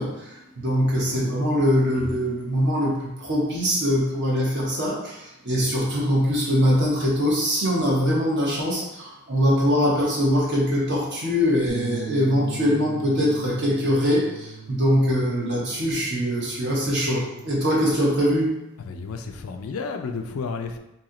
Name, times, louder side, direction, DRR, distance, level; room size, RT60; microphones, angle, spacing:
voice 1, 0.0-18.5, equal, 55° right, -4 dB, 1.0 m, -22 dB
Bass guitar, 11.7-17.9, right 6 dB, 70° right, 0.5 m, -39 dB
voice 2, 18.8-20.8, left 4 dB, 70° left, 6 dB, 0.4 m, -32 dB
3.0 x 2.8 x 3.8 m, 0.90 s
head